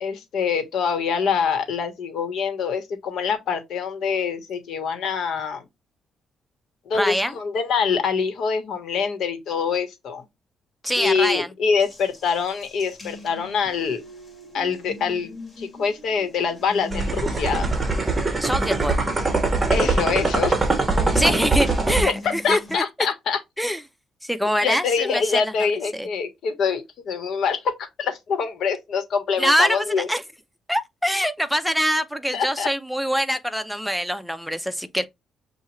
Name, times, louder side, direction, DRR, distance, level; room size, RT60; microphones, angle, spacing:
voice 1, 0.0-5.6 6.9-10.3 11.0-14.0 14.5-17.7 19.7-20.5 22.4-23.4 24.6-30.1 32.3-32.7, left 6 dB, 70° left, 1.2 m, -25 dB
voice 2, 6.9-7.3 10.8-11.5 18.4-19.0 21.1-22.8 23.6-23.8 24.2-25.5 25.9-26.1 29.4-30.2 30.7-35.1, equal, ahead, 0.6 m, -24 dB
Water tap faucet, 11.8-22.8, left 2 dB, 30° left, 2.0 m, -40 dB
sound 1, 16.9-22.1, right 3 dB, 20° right, 1.0 m, -22 dB
6.9 x 2.4 x 3.1 m
cardioid pair, 90°, 0 cm